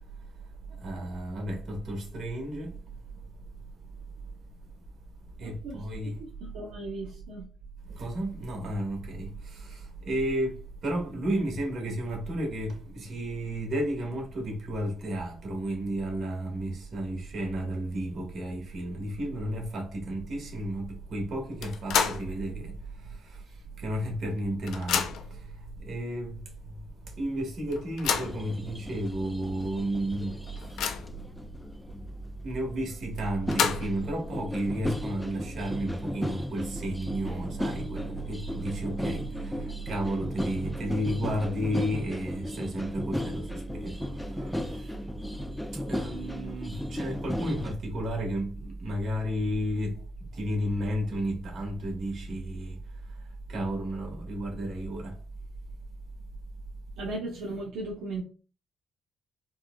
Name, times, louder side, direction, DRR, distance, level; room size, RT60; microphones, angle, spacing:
voice 1, 0.8-2.7 5.4-6.2 7.9-22.7 23.0-23.4 23.8-25.4 25.8-26.4 27.2-30.3 32.4-44.0 44.3-44.9 45.9-50.0 50.4-52.8 53.5-55.1, right 1 dB, 60° right, 1.4 m, -32 dB
voice 2, 5.4-5.8 6.4-7.5 57.0-58.2, right 2 dB, 85° right, 0.9 m, -36 dB
sound 1, 21.6-22.3 22.7-22.8 23.9-24.0 24.3-25.4 26.2-26.3 26.7-26.8 27.7-28.4 29.1-29.2 29.6-29.7 30.2-31.2 33.2-34.1, left 7 dB, 80° left, 0.4 m, -30 dB
sound 2, 28.2-33.0 33.5-47.7, left 1 dB, 5° left, 0.3 m, -36 dB
4.2 x 2.3 x 2.2 m
cardioid pair, 90°, 0 cm